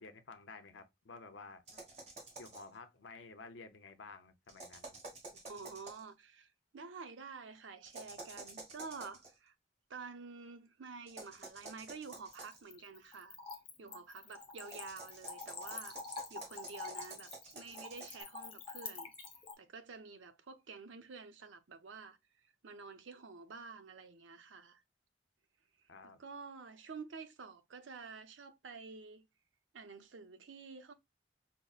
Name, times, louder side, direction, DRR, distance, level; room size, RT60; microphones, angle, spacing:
voice 1, 0.0-1.8 2.4-5.0 25.9-26.2, left 4 dB, 80° left, 0.6 m, -52 dB
sound 1, 1.7-2.7 4.5-6.1 7.8-9.3 11.1-12.7 14.6-18.2, right 3 dB, 35° right, 1.3 m, -51 dB
voice 2, 5.5-9.5 9.9-13.4 13.8-16.0 16.3-19.1 19.6-24.8 26.0-29.3 29.7-30.9, right 4 dB, 85° right, 0.6 m, -50 dB
Splash splatter / Trickle dribble, 12.2-19.5, left 4 dB, 30° left, 0.8 m, -46 dB
5.2 x 2.1 x 2.3 m
head